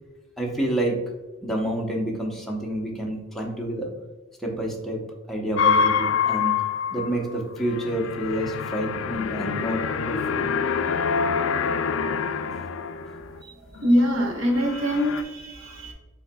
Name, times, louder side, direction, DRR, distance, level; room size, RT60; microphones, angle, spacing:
voice 1, 0.4-1.0 1.4-3.9 4.4-5.0 5.3-6.6 6.9-10.4 12.1-12.8, right 1 dB, ahead, -1 dB, 0.8 m, -29 dB
sound 1, 5.6-13.4 13.8-14.2 14.5-15.2, left 6 dB, 65° left, 0.3 m, -26 dB
voice 2, 13.8-15.9, equal, 75° right, 0 dB, 1.1 m, -23 dB
5.5 x 4.0 x 2.2 m, 1.2 s
head